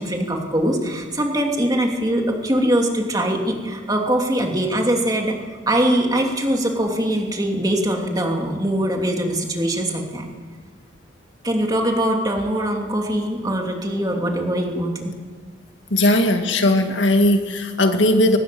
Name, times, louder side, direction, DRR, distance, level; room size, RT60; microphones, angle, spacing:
voice 1, 0.0-5.3 5.7-10.3 11.4-15.1, right 1 dB, 20° right, 1 dB, 2.8 m, -22 dB
voice 2, 15.9-18.4, left 1 dB, 70° left, 5 dB, 2.0 m, -18 dB
24.0 x 19.0 x 7.0 m, 1.5 s
head